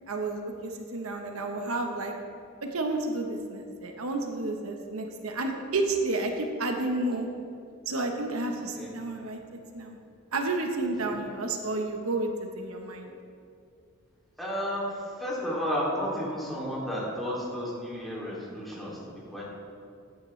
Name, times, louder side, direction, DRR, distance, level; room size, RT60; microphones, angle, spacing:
voice 1, 0.1-2.1 2.7-7.3 7.9-10.0 10.3-13.1, right 2 dB, 90° right, 3 dB, 1.0 m, -31 dB
voice 2, 8.6-8.9 14.4-19.5, equal, ahead, -7 dB, 2.7 m, -32 dB
14.0 x 9.6 x 3.3 m, 2.5 s
head